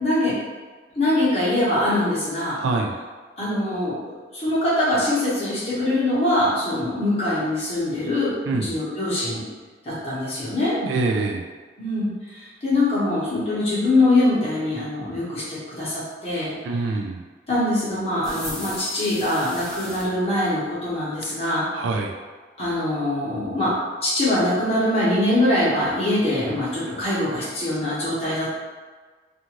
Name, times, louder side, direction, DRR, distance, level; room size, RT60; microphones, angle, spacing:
voice 1, 0.0-0.3 0.9-2.6 3.4-8.3 8.6-9.5 9.8-10.8 11.8-16.5 17.5-21.6 22.6-23.7 24.0-28.5, left 1 dB, 30° left, -9 dB, 1.0 m, -23 dB
voice 2, 2.6-2.9 8.5-8.7 10.8-11.4 16.6-17.2 21.7-22.1, right 3 dB, 80° right, 3 dB, 0.3 m, -24 dB
sound 1, 18.2-20.1, left 1 dB, 5° left, 0.3 m, -36 dB
2.5 x 2.5 x 2.9 m, 1.4 s
head